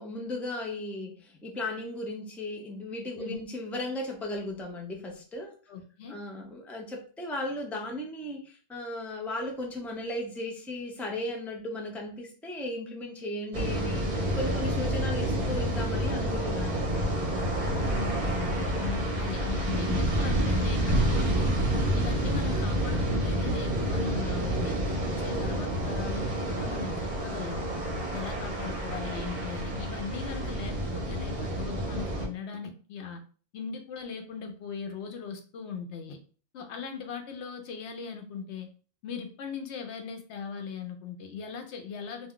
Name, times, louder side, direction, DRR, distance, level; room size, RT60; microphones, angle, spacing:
voice 1, 0.0-5.6 6.1-14.1 14.4-17.1, left 1 dB, ahead, 0 dB, 0.3 m, -36 dB
voice 2, 5.7-6.2 17.8-21.5 21.9-27.7 28.1-33.2 33.5-36.2 36.5-38.7 39.0-42.3, left 6 dB, 90° left, 6 dB, 0.9 m, -39 dB
sound 1, 13.5-32.3, right 1 dB, 45° right, 0.8 m, -29 dB
2.4 x 2.2 x 3.6 m, 0.39 s
omnidirectional pair, 1.1 m